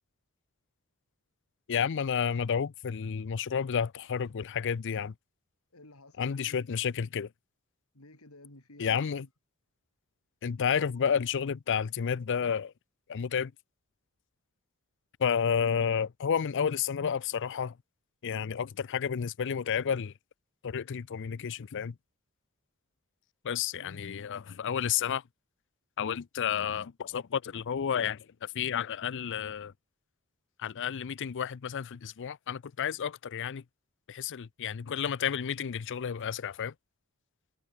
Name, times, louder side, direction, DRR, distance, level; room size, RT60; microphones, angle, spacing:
voice 1, 1.7-5.1 6.2-7.3 8.8-9.3 10.4-12.7 13.1-13.5 15.2-17.7 18.2-20.1 20.6-21.9 23.4-25.2 26.0-29.7 30.6-33.6 34.1-36.7, left 7 dB, 55° left, 0.5 m, -31 dB
voice 2, 5.7-6.7 7.9-9.3 23.8-24.1, left 1 dB, 75° left, 5.2 m, -53 dB
head